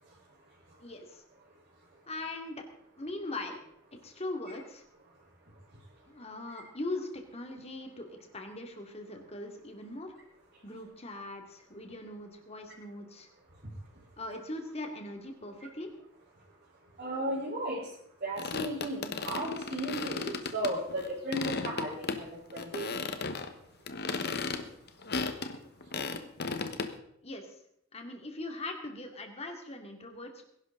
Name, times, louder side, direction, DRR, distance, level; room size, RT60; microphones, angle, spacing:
voice 1, 0.8-1.2 2.1-2.6 3.0-3.6 4.0-4.8 6.1-10.1 10.6-13.3 14.2-15.9 27.2-27.6 27.9-30.4, left 2 dB, 30° left, 4 dB, 2.4 m, -40 dB
voice 2, 17.0-17.9 18.2-23.0, right 1 dB, 50° right, -6 dB, 4.2 m, -35 dB
sound 1, 18.4-21.1 21.3-22.2 22.5-23.5 23.9-26.9, left 4 dB, 55° left, 1.2 m, -35 dB
21.0 x 11.5 x 3.8 m, 0.73 s
head